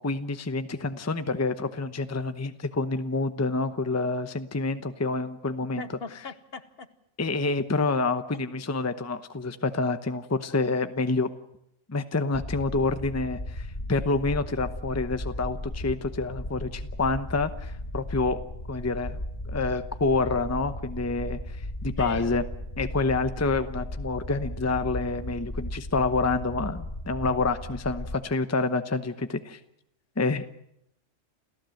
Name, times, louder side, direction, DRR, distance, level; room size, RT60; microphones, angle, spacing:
voice 1, 0.0-5.8 7.2-11.3 11.9-18.4 18.7-19.2 19.5-21.6 21.8-22.4 22.8-29.6 30.2-30.4, left 3 dB, 15° left, 10 dB, 0.8 m, -28 dB
voice 2, 5.7-6.9 22.0-22.3, left 4 dB, 55° left, 11 dB, 1.3 m, -39 dB
sound 1, 12.3-28.2, left 1 dB, 35° left, 2.8 m, -36 dB
29.0 x 15.0 x 7.8 m, 0.78 s
omnidirectional pair, 1.3 m